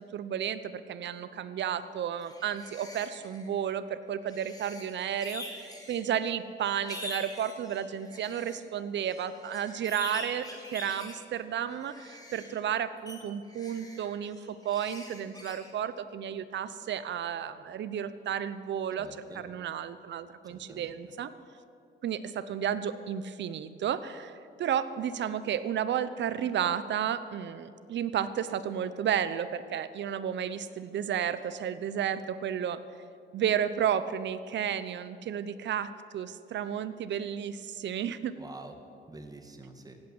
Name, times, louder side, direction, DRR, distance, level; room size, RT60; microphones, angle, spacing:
voice 1, 0.1-19.1 19.3-21.3 22.0-32.8 33.3-38.3, right 9 dB, 65° right, 14 dB, 0.9 m, -32 dB
sound 1, 2.1-3.5 4.2-6.1 6.6-8.6 9.0-11.2 11.6-12.6 13.1-13.2 13.5-15.7, left 1 dB, 20° left, 3.4 m, -45 dB
voice 2, 19.0-19.4 20.5-20.9 38.4-38.7 39.1-40.0, right 2 dB, 20° right, 5 dB, 2.0 m, -47 dB
16.0 x 8.8 x 9.7 m, 2.4 s
cardioid pair, 90°, 20 cm